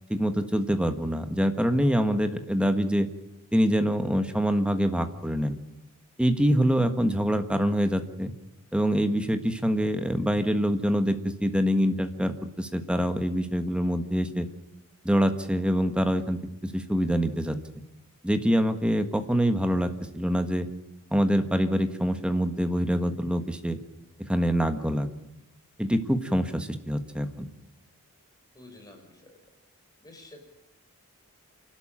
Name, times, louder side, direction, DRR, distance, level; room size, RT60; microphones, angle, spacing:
voice 1, 0.1-3.1 3.5-5.6 6.2-8.3 8.7-14.5 15.0-17.6 18.2-20.7 21.1-23.8 24.3-25.1 25.8-27.5, equal, 5° right, 8 dB, 1.5 m, -25 dB
voice 2, 28.5-29.4 30.0-30.5, left 2 dB, 15° left, 2 dB, 5.5 m, -49 dB
27.5 x 12.5 x 9.0 m, 0.90 s
head